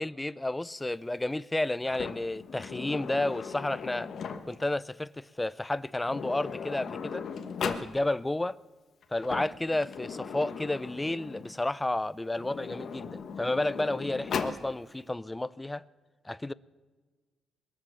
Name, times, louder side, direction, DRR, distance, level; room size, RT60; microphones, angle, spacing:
voice 1, 0.0-4.1 4.5-7.3 7.6-8.6 9.1-15.8 16.2-16.5, left 2 dB, 10° left, 0.4 m, -31 dB
Sliding door, 1.8-4.7 5.7-5.8 6.0-7.9 9.0-11.5 12.3-14.6, left 6 dB, 55° left, 1.2 m, -38 dB
21.5 x 8.0 x 7.2 m
cardioid pair, 125°, 0 cm